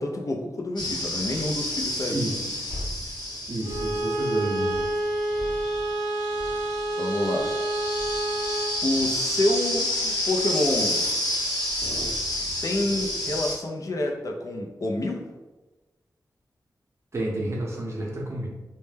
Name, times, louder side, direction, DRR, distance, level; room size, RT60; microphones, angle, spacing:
voice 1, 0.0-2.3 7.0-7.5 8.8-11.1 12.6-15.2, left 1 dB, 50° left, 2 dB, 0.4 m, -28 dB
sound 1, 0.8-13.6, left 1 dB, 85° left, 0.8 m, -30 dB
voice 2, 2.1-2.7 3.5-4.9 17.1-18.5, right 1 dB, 40° right, -2 dB, 0.6 m, -30 dB
Bowed string instrument, 3.6-8.8, right 1 dB, 85° right, 0.4 m, -28 dB
2.1 x 2.1 x 3.1 m, 1.1 s
wide cardioid pair, 90°, 7 cm